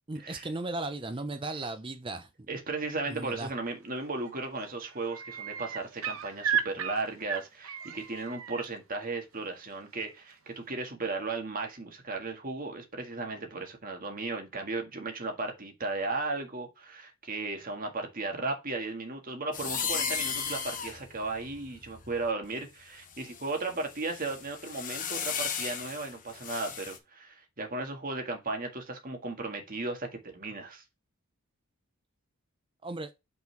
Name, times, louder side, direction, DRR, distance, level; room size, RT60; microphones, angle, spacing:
voice 1, 0.1-2.5 3.1-3.5 32.8-33.1, right 2 dB, 25° right, 0.6 m, -36 dB
voice 2, 2.5-30.8, right 3 dB, 40° right, 1.8 m, -35 dB
sound 1, 3.9-4.3 4.6-8.6 10.3-10.4, right 8 dB, 70° right, 0.9 m, -34 dB
sound 2, 19.5-22.5 23.1-27.0, left 7 dB, 35° left, 1.1 m, -36 dB
5.8 x 4.3 x 4.6 m
head